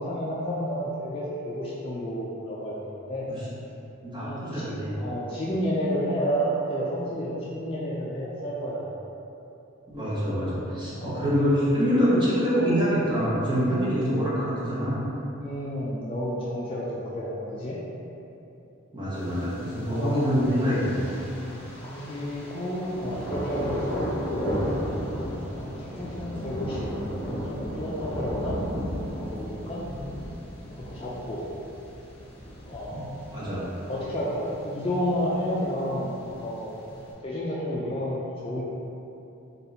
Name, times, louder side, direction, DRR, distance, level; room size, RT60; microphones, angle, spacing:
voice 1, 0.0-3.3 4.2-8.9 11.0-11.3 15.4-17.8 19.8-20.3 21.8-24.5 25.5-26.9 27.5-28.6 29.2-29.8 30.9-31.4 32.6-33.3 33.9-36.7 37.2-38.6, equal, 25° left, -6 dB, 0.4 m, -31 dB
voice 2, 4.0-4.9 9.9-15.0 18.9-21.1 32.9-33.0 33.3-33.6, equal, 20° right, -10 dB, 1.1 m, -25 dB
Thunder, 19.1-37.1, equal, 10° left, 0.8 m, -35 dB
3.7 x 2.8 x 4.0 m, 2.9 s
head